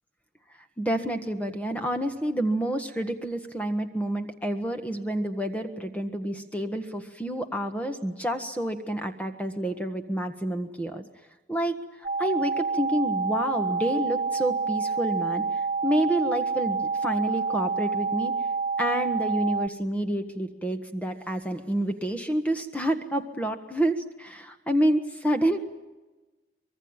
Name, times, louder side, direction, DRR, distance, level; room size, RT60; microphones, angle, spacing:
voice 1, 0.8-11.0 11.5-11.7 12.2-15.4 15.8-18.4 18.8-25.6, right 1 dB, 10° left, 6 dB, 1.5 m, -28 dB
sound 1, 12.0-19.7, right 5 dB, 35° right, 0.8 m, -28 dB
25.0 x 22.5 x 8.9 m, 1.2 s
head